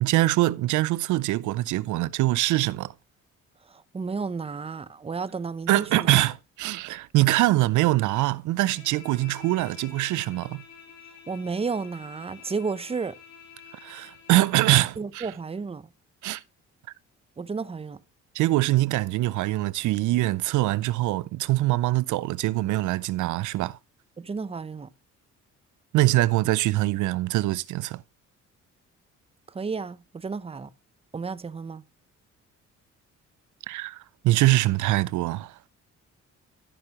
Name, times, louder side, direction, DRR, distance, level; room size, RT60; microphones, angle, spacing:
voice 1, 0.0-2.9 5.7-10.6 13.8-15.3 16.2-16.4 18.3-23.8 25.9-28.0 33.7-35.6, right 17 dB, 80° right, 0.4 m, -23 dB
voice 2, 3.7-6.1 11.3-13.2 15.0-15.9 17.4-18.0 24.2-24.9 29.5-30.7 31.1-31.8, right 5 dB, 20° right, 0.7 m, -32 dB
Bowed string instrument, 8.6-14.9, left 7 dB, 85° left, 3.8 m, -49 dB
13.5 x 6.6 x 2.9 m
cardioid pair, 90°, 30 cm